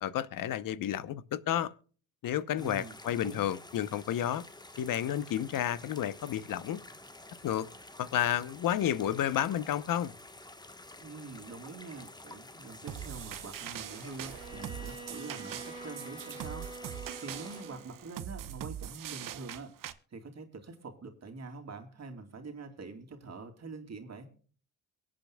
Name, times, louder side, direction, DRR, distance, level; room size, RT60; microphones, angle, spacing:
voice 1, 0.0-1.7 2.2-4.4 4.8-6.8 7.4-7.7 8.0-10.1, left 11 dB, 65° left, 0.9 m, -31 dB
voice 2, 2.5-3.5 11.0-19.7 20.1-24.3, right 3 dB, 50° right, 2.7 m, -45 dB
sound 1, 2.6-17.6, left 2 dB, 10° left, 1.3 m, -50 dB
sound 2, 12.9-19.9, right 11 dB, 65° right, 1.0 m, -42 dB
Bowed string instrument, 14.3-18.0, right 3 dB, 15° right, 2.3 m, -46 dB
23.5 x 8.5 x 2.3 m
supercardioid pair, 60°, 35 cm